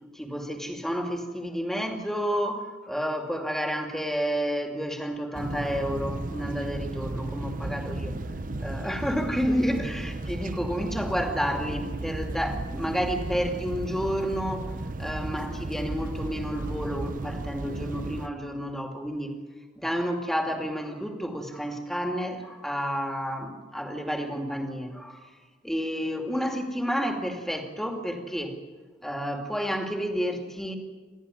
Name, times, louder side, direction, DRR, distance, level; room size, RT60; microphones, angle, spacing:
voice 1, 0.1-8.1 8.6-19.4 19.8-25.3 25.6-28.5 29.0-30.8, equal, ahead, 3 dB, 2.4 m, -30 dB
sound 1, 5.3-18.3, right 2 dB, 45° right, 0.9 m, -34 dB
29.0 x 13.5 x 9.9 m, 1.5 s
head